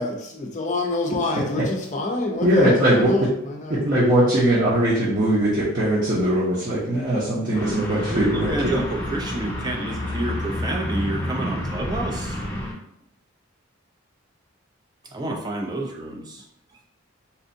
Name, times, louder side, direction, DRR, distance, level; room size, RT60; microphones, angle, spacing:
voice 1, 0.0-3.8, left 2 dB, 35° left, 2 dB, 0.5 m, -27 dB
voice 2, 2.4-3.1 3.8-8.8, right 1 dB, 40° right, -8 dB, 0.7 m, -20 dB
voice 3, 7.4-12.4 15.0-16.4, right 2 dB, 20° right, 2 dB, 0.3 m, -29 dB
sound 1, 7.5-12.7, left 1 dB, 10° left, 0.8 m, -29 dB
4.3 x 2.6 x 2.6 m, 0.77 s
head